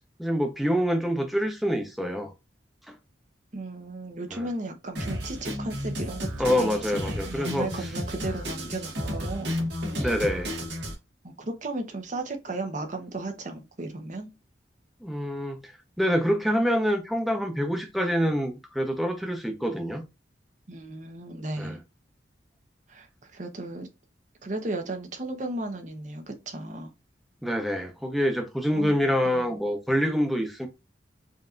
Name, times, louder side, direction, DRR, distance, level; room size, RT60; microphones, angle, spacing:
voice 1, 0.2-2.3 4.3-4.5 6.4-7.7 10.0-10.5 15.0-20.0 21.6-21.8 27.4-30.7, equal, ahead, 0.8 m, -26 dB
voice 2, 3.5-9.6 11.2-14.3 20.7-21.8 22.9-23.9 24.4-26.9 28.7-29.0 29.2-29.5, right 2 dB, 45° right, 0.9 m, -35 dB
Drum kit, 5.0-10.9, equal, 75° right, 1.5 m, -32 dB
5.3 x 2.8 x 2.5 m
head